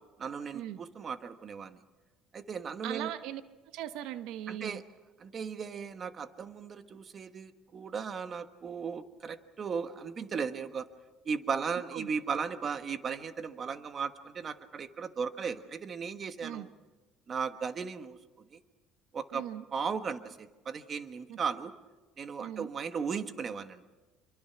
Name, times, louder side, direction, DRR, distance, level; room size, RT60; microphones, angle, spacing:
voice 1, 0.2-1.8 2.3-3.1 4.5-4.8 5.2-10.9 11.2-16.7 17.3-18.2 18.5-18.6 19.1-19.4 19.7-21.7 22.2-23.8, right 6 dB, 35° right, 9 dB, 1.3 m, -36 dB
voice 2, 2.8-4.8 11.9-12.1 16.4-16.7 19.3-19.6 21.3-21.4 22.4-22.7, right 12 dB, 75° right, 11 dB, 0.9 m, -39 dB
27.0 x 23.5 x 5.9 m, 1.2 s
cardioid pair, 135°, 0 cm